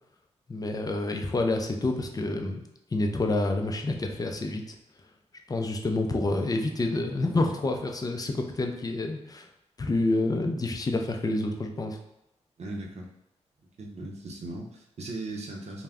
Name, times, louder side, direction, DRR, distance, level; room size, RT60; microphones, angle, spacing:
voice 1, 0.5-2.6 2.9-4.7 5.5-9.5 9.8-12.0, left 2 dB, 30° left, 3 dB, 0.4 m, -28 dB
voice 2, 12.6-13.1 13.8-15.8, right 2 dB, 60° right, 0 dB, 0.6 m, -38 dB
2.3 x 2.1 x 3.4 m, 0.85 s
cardioid pair, 60°, 12 cm